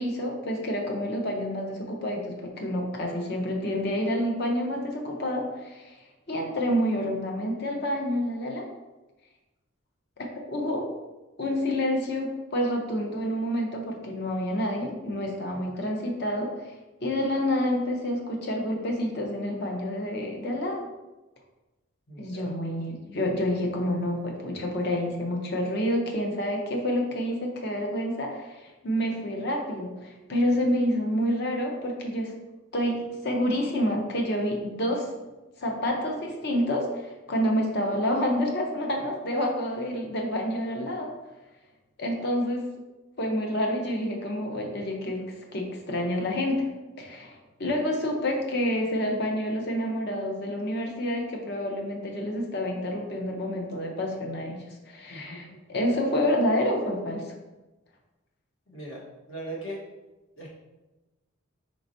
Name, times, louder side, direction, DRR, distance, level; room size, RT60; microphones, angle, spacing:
voice 1, 0.0-6.0 6.3-8.7 10.2-10.9 11.4-16.7 17.0-20.8 22.2-32.3 32.7-35.3 35.6-41.1 42.0-42.7 43.2-45.2 45.5-46.6 47.0-57.3, equal, 50° left, 1 dB, 0.7 m, -28 dB
voice 2, 22.1-22.5 55.1-55.6 58.7-59.0 59.3-59.8 60.4-60.5, right 1 dB, 65° left, -4 dB, 1.3 m, -39 dB
4.7 x 4.2 x 2.6 m, 1.1 s
head